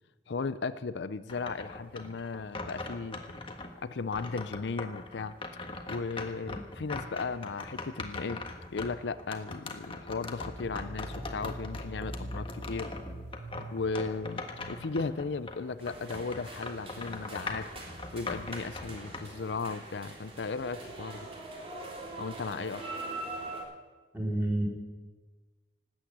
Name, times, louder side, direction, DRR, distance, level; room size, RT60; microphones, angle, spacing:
voice 1, 0.3-3.2 3.8-5.3 5.9-8.4 8.7-12.9 13.7-17.7 18.1-21.2 22.2-22.8, left 4 dB, 80° left, 14 dB, 0.6 m, -36 dB
sound 1, 1.3-3.7 4.1-15.6 15.9-19.2, left 3 dB, 30° left, 1.4 m, -41 dB
voice 2, 6.4-6.8 24.1-24.6, right 1 dB, 10° right, -4 dB, 4.5 m, -31 dB
sound 2, 10.5-19.4, right 1 dB, 60° right, 4.2 m, -46 dB
sound 3, 15.8-23.6, right 2 dB, 35° right, 3.4 m, -43 dB
19.0 x 8.9 x 8.1 m, 1.3 s
head